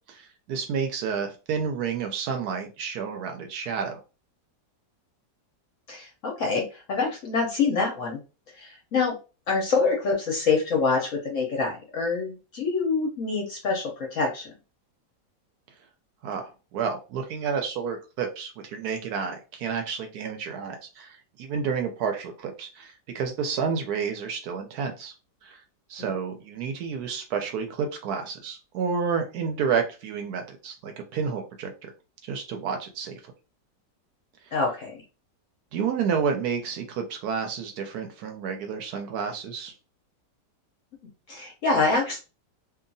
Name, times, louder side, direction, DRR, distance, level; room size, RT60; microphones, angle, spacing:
voice 1, 0.1-4.0 16.2-25.1 25.4-25.6 25.9-31.9 32.2-33.2 34.5-34.6 35.7-39.7, right 6 dB, 70° right, 4 dB, 1.0 m, -30 dB
voice 2, 5.9-8.2 8.6-9.1 9.5-14.5 26.0-26.1 34.5-35.0 41.3-42.2, left 4 dB, 60° left, 0 dB, 0.8 m, -26 dB
2.8 x 2.3 x 2.6 m, 0.32 s
omnidirectional pair, 1.9 m